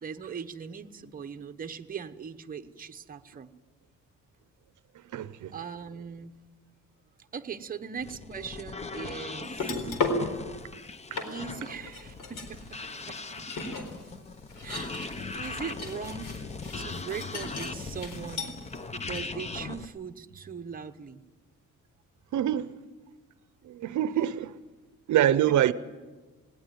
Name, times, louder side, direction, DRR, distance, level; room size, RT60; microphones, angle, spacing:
voice 1, 0.0-3.5 5.5-6.4 7.3-9.9 11.2-12.8 13.1-13.2 14.6-16.5 16.8-18.5 18.9-21.2, right 6 dB, 25° right, 1.0 m, -40 dB
voice 2, 5.1-5.5 11.1-11.2 22.3-22.7 23.6-24.5 25.1-25.7, right 11 dB, 70° right, 0.7 m, -25 dB
sound 1, 8.0-19.9, left 4 dB, 20° left, 0.7 m, -39 dB
sound 2, 9.4-10.3 10.8-10.9 11.1-18.8 19.1-19.2, left 3 dB, 80° left, 4.2 m, -36 dB
19.5 x 19.0 x 9.2 m
cardioid pair, 155°, 31 cm